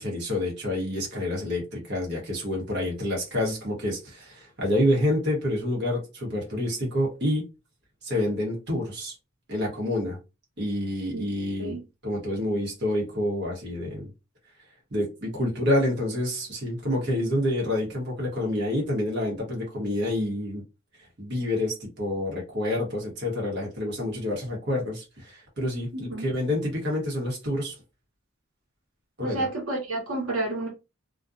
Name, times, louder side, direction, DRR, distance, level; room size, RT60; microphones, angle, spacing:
voice 1, 0.0-7.5 8.0-9.1 9.5-10.2 10.6-11.7 12.0-14.1 14.9-20.6 21.2-27.7 29.2-29.5, left 1 dB, 55° right, 1.0 m, -28 dB
voice 2, 25.9-26.3 29.2-30.7, right 2 dB, 90° right, 1.0 m, -30 dB
2.4 x 2.2 x 2.5 m
head